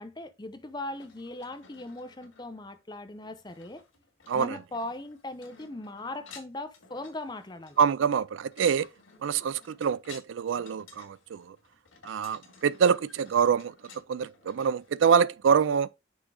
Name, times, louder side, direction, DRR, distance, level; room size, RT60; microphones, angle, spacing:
voice 1, 0.0-3.8 4.3-7.8, left 2 dB, 20° left, 0.6 m, -39 dB
sound 1, 0.9-15.0, left 5 dB, 85° left, 2.2 m, -54 dB
voice 2, 4.3-4.6 7.8-8.9 9.2-11.6 12.0-13.7 14.1-15.9, right 7 dB, 75° right, 0.4 m, -25 dB
6.2 x 3.7 x 4.8 m
head